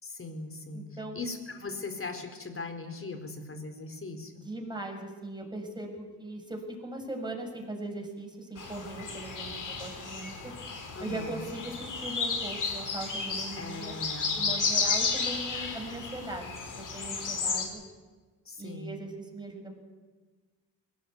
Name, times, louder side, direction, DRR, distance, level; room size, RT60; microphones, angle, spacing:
voice 1, 0.0-4.4 11.0-11.4 13.6-14.4 18.4-19.0, left 3 dB, 35° left, 6 dB, 4.6 m, -39 dB
voice 2, 0.7-1.2 4.4-10.5 11.0-13.9 14.3-17.8 18.6-19.7, right 1 dB, 10° right, 2 dB, 7.0 m, -39 dB
sound 1, 8.6-17.7, left 4 dB, 55° left, 4.6 m, -33 dB
21.0 x 17.5 x 9.4 m, 1.4 s
supercardioid pair, 65°, 38 cm